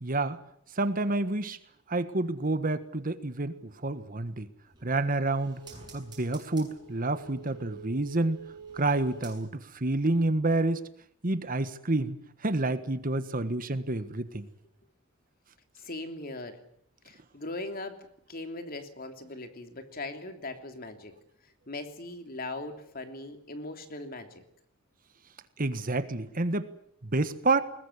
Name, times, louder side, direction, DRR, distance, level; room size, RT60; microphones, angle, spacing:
voice 1, 0.0-0.4 0.8-1.6 1.9-4.5 4.8-5.6 5.9-8.4 8.7-10.9 11.2-14.5 25.6-26.7 27.1-27.6, right 2 dB, 45° right, 12 dB, 1.5 m, -29 dB
sound 1, 4.7-9.8 10.1-10.2, right 5 dB, 20° right, 7.7 m, -48 dB
voice 2, 15.8-16.6 17.0-18.0 18.3-21.1 21.7-24.3, left 2 dB, 45° left, 7 dB, 3.1 m, -39 dB
21.5 x 20.5 x 9.8 m, 0.69 s
head